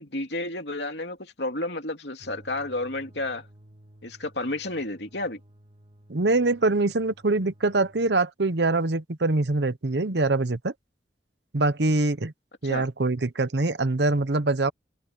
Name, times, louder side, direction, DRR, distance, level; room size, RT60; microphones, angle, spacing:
voice 1, 0.0-3.5 4.0-5.4 12.6-12.9, left 2 dB, 70° left, 3.0 m, -31 dB
sound 1, 2.2-8.2, equal, 35° right, 2.6 m, -54 dB
voice 2, 6.1-10.7 11.5-12.3 12.6-14.7, right 2 dB, 70° right, 0.9 m, -24 dB
head